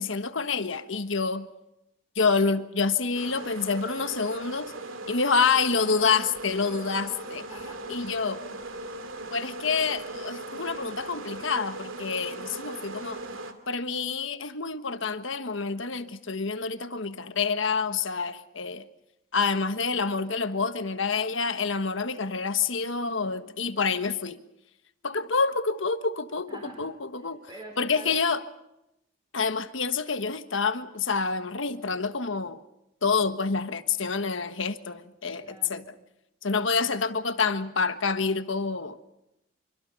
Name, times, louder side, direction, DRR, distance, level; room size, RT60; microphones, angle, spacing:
voice 1, 0.0-1.5 2.1-4.7 5.1-7.4 7.9-8.4 9.3-13.2 13.7-18.8 19.3-24.4 25.0-27.4 27.8-28.4 29.3-32.6 33.0-35.8 36.4-39.0, left 5 dB, 70° left, 1.4 m, -27 dB
sound 1, 3.1-13.5, right 2 dB, 75° right, 2.5 m, -39 dB
voice 2, 7.5-7.9 26.5-26.8 27.2-28.3 35.3-35.9, right 2 dB, 20° right, 4.5 m, -45 dB
26.5 x 24.5 x 5.5 m
head